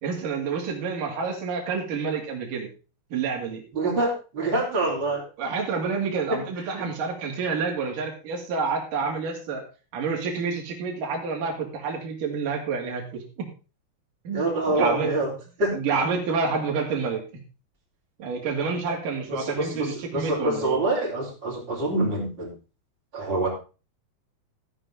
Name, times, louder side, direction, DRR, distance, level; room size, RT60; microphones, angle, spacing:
voice 1, 0.0-2.7 3.1-3.6 5.4-9.6 9.9-13.5 14.2-15.2 15.7-17.2 18.2-20.8, right 5 dB, 60° right, 0 dB, 3.9 m, -28 dB
voice 2, 3.7-5.2 6.3-6.4 14.3-15.3 15.6-15.8 19.3-22.5 23.1-23.5, right 2 dB, 30° right, -7 dB, 3.9 m, -26 dB
14.0 x 8.8 x 3.7 m, 0.33 s
omnidirectional pair, 4.6 m